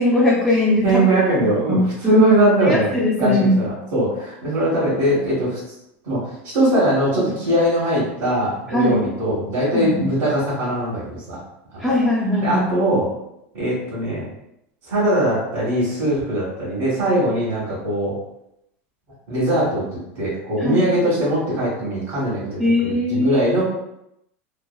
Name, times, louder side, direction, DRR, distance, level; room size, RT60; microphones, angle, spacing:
voice 1, 0.0-1.2 1.7-2.2 2.6-3.6 8.7-9.0 9.7-10.1 11.8-12.7 20.6-20.8 22.6-23.4, left 2 dB, 5° right, -8 dB, 0.6 m, -20 dB
voice 2, 0.8-5.7 6.0-11.4 11.7-11.8 12.4-13.1 13.5-14.2 14.9-18.1 19.3-23.6, right 1 dB, 65° right, -11 dB, 1.4 m, -21 dB
3.2 x 2.1 x 2.3 m, 0.82 s
supercardioid pair, 115°, 7 cm